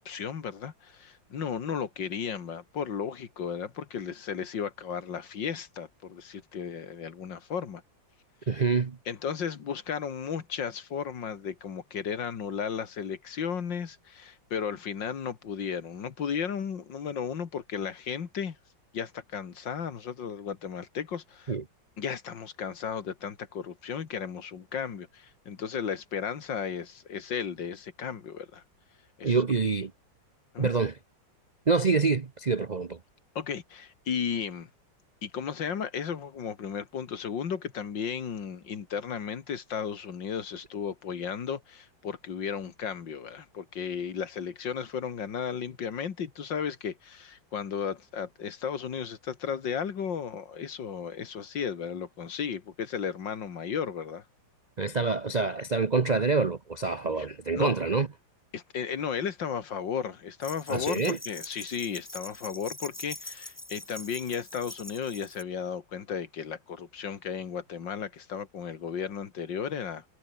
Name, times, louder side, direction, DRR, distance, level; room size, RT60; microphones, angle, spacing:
voice 1, 0.0-7.8 9.1-18.6 18.9-21.6 22.0-28.6 29.2-29.4 30.5-30.7 33.4-34.7 35.2-54.2 57.2-57.3 57.6-57.7 58.5-70.0, left 7 dB, 70° left, 2.5 m, -34 dB
voice 2, 8.5-9.0 21.5-21.6 29.2-29.9 30.6-30.9 31.7-33.0 54.8-58.1 60.7-61.2, right 4 dB, 45° right, 0.5 m, -26 dB
sound 1, 60.4-65.4, left 1 dB, 10° left, 1.7 m, -43 dB
omnidirectional pair, 2.1 m